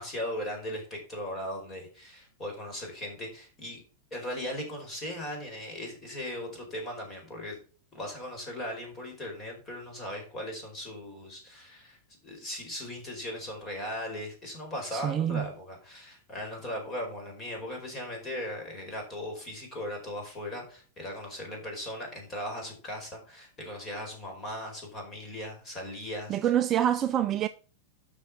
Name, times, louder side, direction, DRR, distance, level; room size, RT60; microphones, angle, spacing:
voice 1, 0.0-3.8 4.1-7.6 7.9-26.5, left 1 dB, 20° left, 4.7 m, -38 dB
voice 2, 14.9-15.5 26.3-27.5, right 10 dB, 25° right, 0.5 m, -26 dB
9.7 x 6.3 x 6.0 m
supercardioid pair, 155°, 0 cm